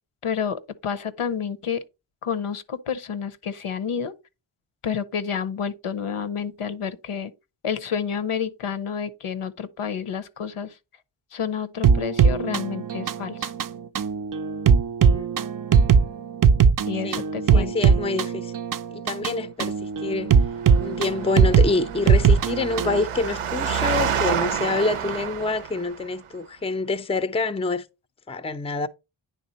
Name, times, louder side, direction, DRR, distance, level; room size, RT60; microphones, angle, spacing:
voice 1, 0.2-1.8 2.2-4.1 4.8-7.3 7.6-10.8 11.3-13.5 16.9-17.7, left 7 dB, 80° left, 0.8 m, -29 dB
sound 1, 11.8-23.0, right 6 dB, 45° right, 0.4 m, -20 dB
voice 2, 17.5-18.5 18.9-20.4 20.8-27.9 28.3-28.9, left 3 dB, 15° left, 0.4 m, -27 dB
Engine, 20.4-26.1, right 8 dB, 85° right, 0.6 m, -29 dB
9.3 x 3.5 x 4.0 m
wide cardioid pair, 65°, 50 cm